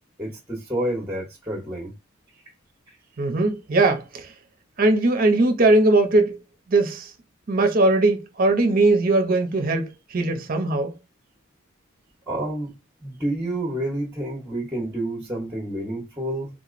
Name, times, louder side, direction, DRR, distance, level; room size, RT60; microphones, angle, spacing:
voice 1, 0.2-1.9 12.3-12.7 13.0-16.5, right 1 dB, 10° right, 0.8 m, -29 dB
voice 2, 3.2-4.3 4.8-6.4 6.7-7.1 7.5-10.9, right 2 dB, 40° right, 0.6 m, -20 dB
3.7 x 2.9 x 2.5 m
head